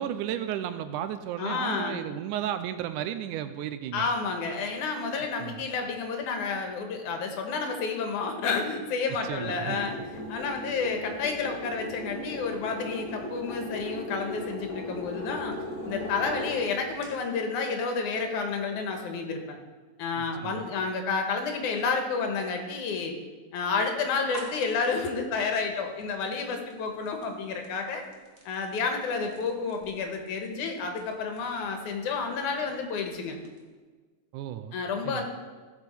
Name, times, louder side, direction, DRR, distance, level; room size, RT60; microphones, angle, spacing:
voice 1, 0.0-4.1 5.4-5.6 9.3-9.8 20.2-20.7 34.3-34.8 35.0-35.2, right 10 dB, 90° right, 11 dB, 2.1 m, -34 dB
voice 2, 1.4-2.0 3.9-15.6 15.8-19.6 20.0-23.2 23.5-28.0 28.5-33.4 34.7-35.2, left 4 dB, 80° left, 4 dB, 2.6 m, -30 dB
sound 1, 9.3-17.0, left 1 dB, 55° left, 3.5 m, -37 dB
sound 2, 24.1-33.8, right 3 dB, 40° right, 0.7 m, -52 dB
15.5 x 5.9 x 4.3 m, 1.4 s
omnidirectional pair, 3.5 m